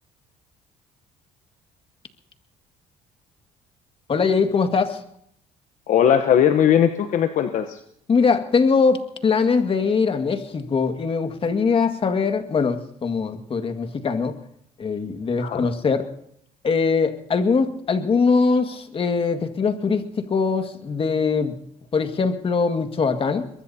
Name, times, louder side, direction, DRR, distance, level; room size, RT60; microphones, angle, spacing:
voice 1, 4.1-5.0 8.1-14.4 14.8-16.0 16.6-21.6 21.9-23.5, left 5 dB, 40° left, 7 dB, 1.9 m, -22 dB
voice 2, 5.9-7.8 15.4-15.7, left 9 dB, 60° left, 8 dB, 1.0 m, -19 dB
23.0 x 21.5 x 2.8 m, 0.70 s
supercardioid pair, 85°, 15 cm